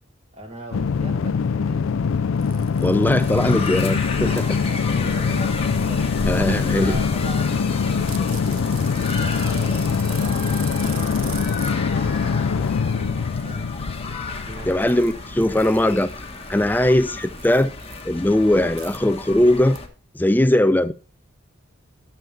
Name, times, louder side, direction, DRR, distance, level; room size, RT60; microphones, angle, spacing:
voice 1, 0.3-2.1 4.2-6.2 6.8-13.7 14.5-14.9, right 1 dB, 30° right, 2.7 m, -40 dB
sound 1, 0.7-15.1, left 5 dB, 75° left, 0.4 m, -23 dB
sound 2, 2.4-5.0 8.1-11.7 14.6-15.1 15.4-18.0 18.8-19.0 19.8-19.9, right 11 dB, 80° right, 1.0 m, -41 dB
voice 2, 2.8-4.3 6.3-7.0 14.7-16.1 16.5-17.7 18.0-19.8 20.1-20.9, left 1 dB, 10° left, 0.4 m, -19 dB
sound 3, 3.2-19.9, left 3 dB, 30° left, 1.2 m, -33 dB
11.5 x 7.1 x 3.3 m
head